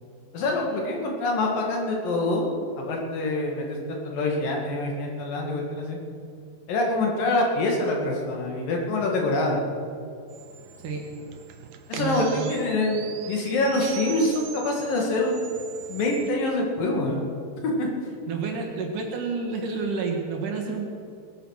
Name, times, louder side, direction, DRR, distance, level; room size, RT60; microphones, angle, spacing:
voice 1, 0.3-2.5 2.8-6.0 6.7-9.6 11.9-15.4 15.9-17.2 17.8-17.9, left 2 dB, 70° left, 0 dB, 3.7 m, -25 dB
sound 1, 10.3-16.3, right 8 dB, 85° right, 2.8 m, -41 dB
voice 2, 12.0-12.6 18.3-20.9, right 4 dB, 65° right, 1 dB, 3.1 m, -29 dB
19.5 x 9.1 x 6.5 m, 2.4 s
omnidirectional pair, 4.2 m